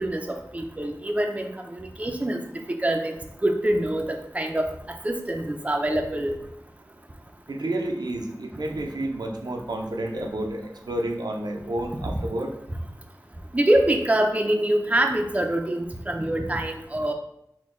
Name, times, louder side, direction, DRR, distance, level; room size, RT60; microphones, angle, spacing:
voice 1, 0.0-2.4 2.7-3.1 3.4-4.7 5.0-6.3 12.0-12.1 13.5-17.1, right 1 dB, 20° right, 3 dB, 0.5 m, -25 dB
voice 2, 7.5-12.5, right 1 dB, 80° right, 2 dB, 0.5 m, -30 dB
4.2 x 2.2 x 4.2 m, 0.77 s
wide cardioid pair, 45°, 7 cm